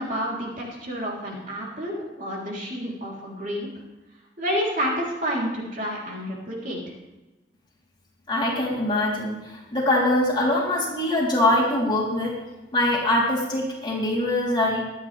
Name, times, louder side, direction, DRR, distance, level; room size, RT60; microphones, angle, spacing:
voice 1, 0.0-3.7 4.4-6.8, equal, 50° right, -3 dB, 3.6 m, -29 dB
voice 2, 8.3-12.3 12.7-14.8, left 1 dB, 25° left, -5 dB, 3.6 m, -23 dB
23.5 x 9.2 x 3.5 m, 1.1 s
head